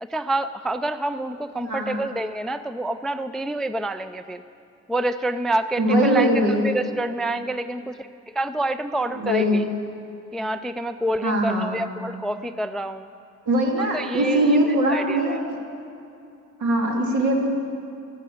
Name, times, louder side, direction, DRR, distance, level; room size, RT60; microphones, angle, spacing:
voice 1, 0.0-4.4 4.9-6.3 6.6-8.1 8.3-9.6 10.3-13.1 13.9-15.4, right 1 dB, ahead, 12 dB, 0.3 m, -27 dB
voice 2, 1.6-2.0 5.8-6.6 9.1-9.7 11.2-11.8 13.5-15.6 16.6-17.5, right 1 dB, 70° right, 0 dB, 2.7 m, -21 dB
12.5 x 11.0 x 7.7 m, 2.7 s
cardioid pair, 90°, 30 cm